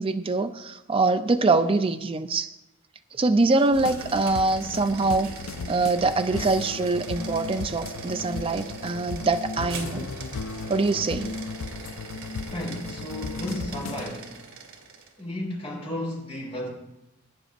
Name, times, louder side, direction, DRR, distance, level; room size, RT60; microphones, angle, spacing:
voice 1, 0.0-2.5 3.2-5.3 5.7-10.1 10.7-11.3, right 3 dB, 25° right, 8 dB, 0.4 m, -24 dB
sound 1, 3.4-15.2, right 4 dB, 75° right, 1.8 m, -42 dB
sound 2, 3.7-14.0, left 4 dB, 75° left, 0.5 m, -36 dB
voice 2, 12.5-14.3 15.2-16.7, left 1 dB, 30° left, -3 dB, 4.1 m, -33 dB
21.0 x 10.0 x 2.5 m, 0.96 s
head